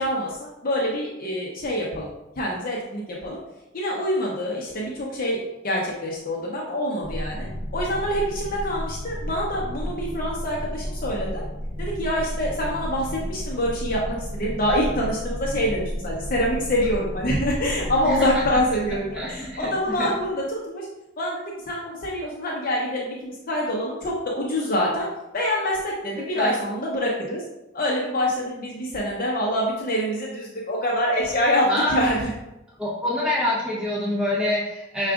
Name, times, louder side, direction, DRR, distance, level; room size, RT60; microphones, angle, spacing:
voice 1, 0.0-2.1 2.4-3.4 3.7-11.4 11.8-20.9 21.2-25.1 25.3-27.4 27.7-32.3, equal, 45° left, -3 dB, 0.7 m, -26 dB
sound 1, 7.0-20.3, equal, 35° right, 1.1 m, -33 dB
voice 2, 18.1-18.6 19.1-20.1 26.3-26.5 28.7-28.8 31.7-32.0 32.8-35.1, left 1 dB, 5° right, -8 dB, 0.7 m, -26 dB
5.9 x 2.4 x 3.5 m, 0.92 s
head